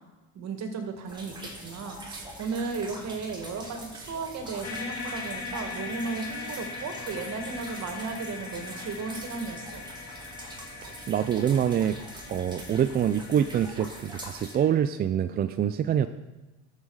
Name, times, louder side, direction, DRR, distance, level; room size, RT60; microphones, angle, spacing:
voice 1, 0.4-9.8, right 4 dB, 45° right, 5 dB, 1.8 m, -35 dB
sound 1, 1.1-14.6, right 1 dB, 10° right, 2.4 m, -44 dB
sound 2, 4.6-14.9, left 4 dB, 40° left, 3.0 m, -41 dB
voice 2, 10.8-12.0 12.3-16.1, right 9 dB, 30° right, 10 dB, 0.4 m, -25 dB
13.0 x 5.6 x 4.7 m, 1.1 s
supercardioid pair, 110°, 36 cm